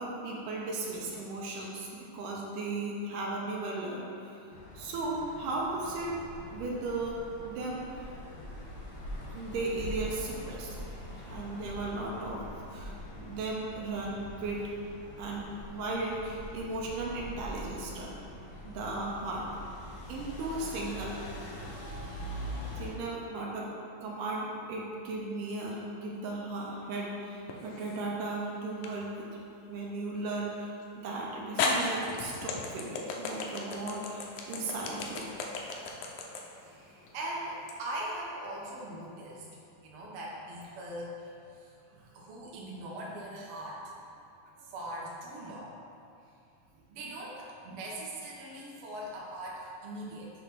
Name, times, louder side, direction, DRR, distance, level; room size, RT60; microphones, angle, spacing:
voice 1, 0.0-4.1 4.7-6.1 6.5-7.8 9.3-10.8 11.1-12.4 12.7-14.6 15.2-18.1 18.6-19.5 20.1-21.2 22.8-23.7 24.0-29.3 29.7-35.3 41.9-42.0 44.6-44.7, right 2 dB, 80° right, -3 dB, 2.4 m, -36 dB
sound 1, 4.5-22.9, equal, 55° left, 1.4 m, -43 dB
sound 2, 27.5-28.1 28.8-28.9 30.8-30.9 31.6-37.8, left 4 dB, 80° left, 2.0 m, -34 dB
voice 2, 36.6-39.5 39.8-41.3 41.6-41.7 42.0-43.9 44.7-45.8 46.9-50.3, right 1 dB, 60° right, -4 dB, 1.5 m, -40 dB
7.1 x 3.3 x 5.8 m, 2.5 s
omnidirectional pair, 3.8 m